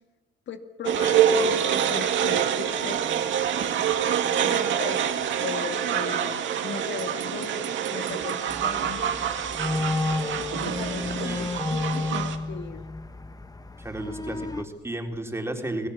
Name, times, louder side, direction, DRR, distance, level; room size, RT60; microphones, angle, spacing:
voice 1, 0.5-3.0 4.4-9.0 10.6-12.8, left 6 dB, 65° left, 6 dB, 2.1 m, -37 dB
sound 1, 0.8-12.4, right 8 dB, 70° right, 2.2 m, -26 dB
sound 2, 8.5-14.6, left 2 dB, 20° left, 1.3 m, -31 dB
voice 2, 11.0-11.5 13.8-15.9, right 1 dB, 15° right, 3 dB, 3.8 m, -33 dB
29.0 x 18.0 x 7.2 m, 1.2 s
cardioid pair, 90°, 20 cm